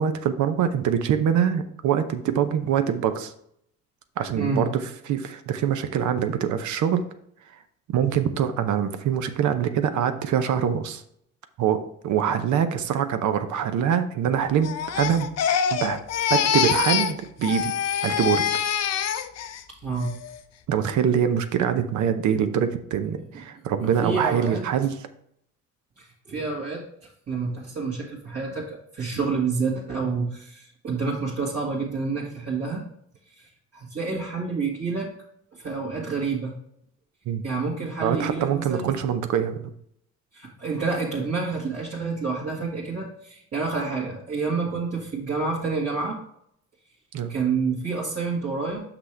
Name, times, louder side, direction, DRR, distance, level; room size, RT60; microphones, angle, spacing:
voice 1, 0.0-3.3 4.2-7.0 7.9-11.0 11.6-15.3 15.7-16.0 16.3-17.7 18.0-18.4 20.7-24.9 37.3-37.4 38.0-39.7 47.1-47.3, right 8 dB, 75° right, 9 dB, 0.7 m, -24 dB
voice 2, 4.3-4.7 19.8-20.1 23.8-24.6 26.0-26.8 27.3-32.8 33.4-35.1 35.5-36.5 37.4-39.0 40.3-46.2 47.3-48.8, right 4 dB, 55° right, -7 dB, 1.9 m, -28 dB
Crying sobbing, 14.6-17.2 17.4-19.6 20.0-20.4, left 8 dB, 60° left, 0.6 m, -25 dB
6.0 x 6.0 x 3.3 m, 0.70 s
cardioid pair, 90°, 30 cm